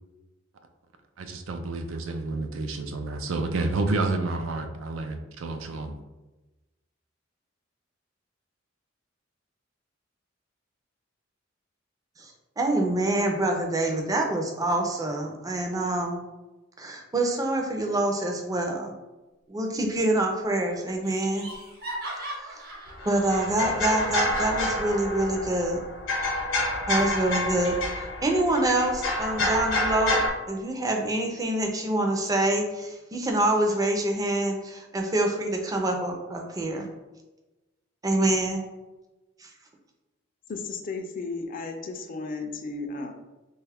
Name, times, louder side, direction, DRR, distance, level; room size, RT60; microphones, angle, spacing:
voice 1, 1.2-6.0, right 3 dB, 85° right, 6 dB, 0.4 m, -29 dB
voice 2, 12.2-16.2 16.8-18.9 19.5-21.5 23.1-25.8 26.9-27.8 28.2-30.2 30.5-36.9 38.0-38.6 39.4-39.5, right 1 dB, 20° right, 2 dB, 0.4 m, -26 dB
Laughter, 19.7-20.3 20.5-20.6 21.0-23.5, right 1 dB, 50° right, 1.0 m, -39 dB
sound 1, 22.9-30.3, left 2 dB, 75° left, 0.8 m, -28 dB
voice 3, 40.5-43.1, left 3 dB, 45° left, 5 dB, 0.4 m, -34 dB
3.0 x 2.3 x 3.4 m, 1.1 s
head